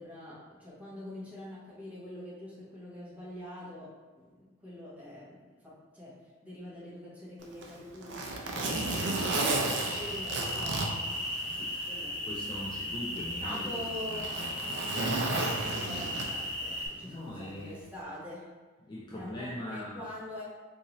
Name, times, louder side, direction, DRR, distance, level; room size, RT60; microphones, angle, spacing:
voice 1, 0.0-6.1 6.4-11.2 11.9-12.4 13.4-14.3 15.0-18.5 19.1-20.4, left 1 dB, 5° right, -9 dB, 1.1 m, -45 dB
Zipper (clothing), 7.4-11.9 12.3-12.4 13.2-16.6 17.8-18.0, right 2 dB, 55° right, 0.4 m, -33 dB
voice 2, 8.5-10.0 11.5-11.7 12.2-13.8 14.1-14.5 15.2-15.4 17.0-17.8 18.8-20.0, left 1 dB, 20° left, -6 dB, 0.4 m, -41 dB
sound 1, 8.6-16.9, left 1 dB, 45° left, 1.2 m, -36 dB
3.7 x 2.6 x 3.0 m, 1.3 s
head